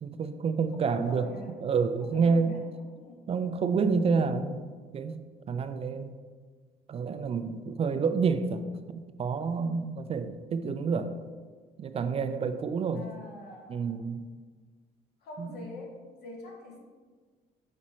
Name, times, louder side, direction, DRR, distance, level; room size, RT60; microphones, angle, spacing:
voice 1, 0.0-1.3 1.6-2.6 3.3-4.7 4.9-5.2 5.5-6.1 6.9-11.1 11.8-13.1 13.7-14.2 15.4-15.7, right 5 dB, 35° right, 10 dB, 0.4 m, -28 dB
voice 2, 0.8-1.6 2.0-2.6 3.0-3.2 12.9-14.0 15.2-16.8, left 2 dB, 75° left, 0 dB, 1.6 m, -44 dB
6.2 x 4.2 x 4.3 m, 1.5 s
cardioid pair, 110°, 17 cm